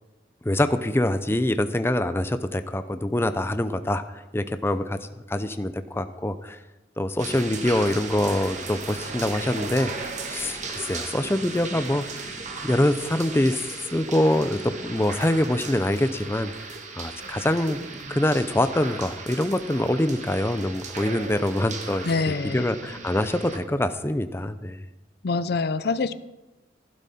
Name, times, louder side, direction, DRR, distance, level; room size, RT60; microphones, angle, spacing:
voice 1, 0.4-5.0 5.3-6.6 7.0-13.6 13.9-24.8, left 1 dB, 15° left, 10 dB, 0.5 m, -25 dB
sound 1, 7.2-23.6, right 4 dB, 40° right, 1.5 m, -36 dB
voice 2, 22.0-22.7 25.2-26.1, left 4 dB, 60° left, 14 dB, 0.5 m, -25 dB
15.5 x 12.0 x 4.2 m, 1.0 s
head